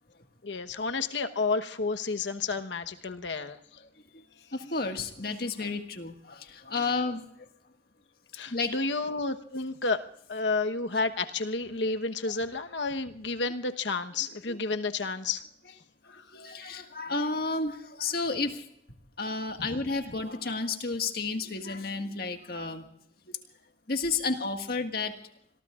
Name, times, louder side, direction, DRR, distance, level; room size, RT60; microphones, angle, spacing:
voice 1, 0.4-3.6 8.3-10.0 10.3-15.4 16.1-16.6, left 3 dB, 80° left, 7 dB, 1.1 m, -31 dB
voice 2, 4.5-7.2 8.5-8.8 14.5-14.6 16.3-18.6 19.2-22.8 23.3-23.4 23.9-25.1, left 3 dB, 55° left, 5 dB, 1.8 m, -31 dB
26.0 x 22.5 x 2.5 m, 0.72 s
head